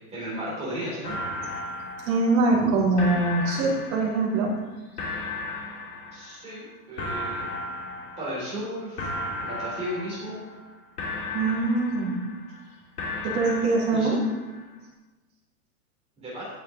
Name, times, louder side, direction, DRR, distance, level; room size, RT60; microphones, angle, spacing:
voice 1, 0.1-1.1 2.6-2.7 6.1-7.5 8.2-9.1 9.4-10.4 13.9-14.1 16.2-16.5, equal, 15° right, -7 dB, 3.6 m, -34 dB
sound 1, 1.0-2.7 3.0-4.6 5.0-6.6 7.0-8.7 9.0-10.7 11.0-12.6 13.0-14.6, left 2 dB, 80° left, 3.3 m, -35 dB
voice 2, 2.1-4.5 11.3-12.2 13.2-14.2, right 3 dB, 40° right, -4 dB, 3.5 m, -23 dB
16.5 x 6.5 x 3.9 m, 1.1 s
supercardioid pair, 160°, 45 cm